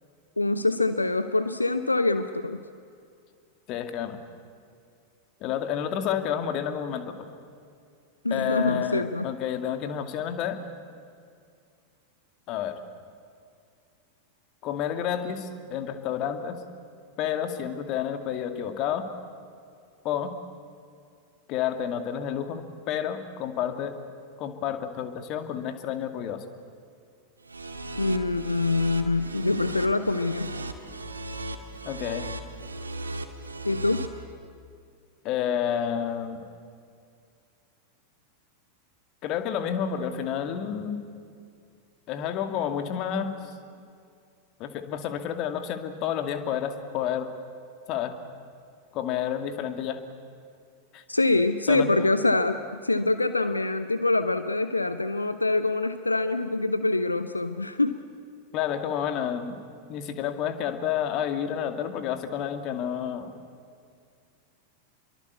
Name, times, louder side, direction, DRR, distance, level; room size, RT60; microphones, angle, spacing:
voice 1, 0.4-2.6 8.2-9.3 28.0-30.5 33.6-34.1 51.1-58.0, left 2 dB, 80° left, 11 dB, 0.8 m, -25 dB
voice 2, 3.7-4.2 5.4-7.2 8.3-10.6 12.5-12.8 14.6-16.6 17.2-19.1 20.0-20.3 21.5-24.0 24.4-26.4 31.8-32.3 35.2-36.4 39.2-41.0 42.1-43.5 44.6-47.3 47.9-48.2 48.9-50.0 50.9-51.0 51.7-52.1 58.5-59.6 59.9-63.4, left 9 dB, 40° left, 8 dB, 2.3 m, -30 dB
sound 1, 27.4-34.1, right 1 dB, 80° right, 2.0 m, -36 dB
28.5 x 23.0 x 8.3 m, 2.3 s
figure-of-eight pair, 90°, 0 cm